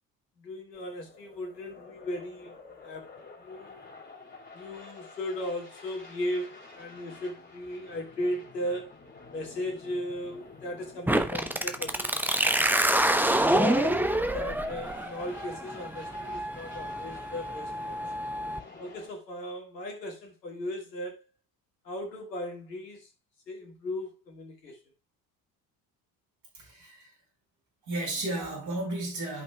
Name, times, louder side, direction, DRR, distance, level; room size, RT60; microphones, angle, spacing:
voice 1, 0.4-2.5 2.8-3.8 4.5-9.0 9.3-12.8 13.5-18.0 18.8-21.3 21.8-23.1 23.5-24.8, left 1 dB, 80° left, 1.9 m, -37 dB
sound 1, 0.7-19.1, left 3 dB, 25° left, 3.4 m, -50 dB
sound 2, 11.1-18.6, right 1 dB, 5° right, 0.8 m, -27 dB
voice 2, 26.5-27.1 27.8-29.4, right 2 dB, 55° right, 4.8 m, -33 dB
13.0 x 5.4 x 2.3 m
figure-of-eight pair, 55°, 48 cm